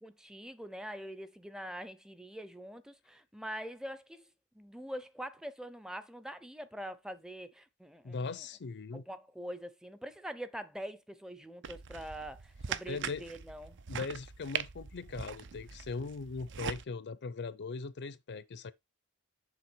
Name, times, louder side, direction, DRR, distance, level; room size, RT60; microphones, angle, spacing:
voice 1, 0.0-4.3 4.5-8.5 8.9-13.8, equal, 5° right, 0.6 m, -44 dB
voice 2, 8.0-9.0 12.9-13.3 13.9-18.7, left 4 dB, 55° left, 0.6 m, -40 dB
sound 1, 11.6-16.8, right 7 dB, 55° right, 0.6 m, -41 dB
7.2 x 3.4 x 6.2 m
head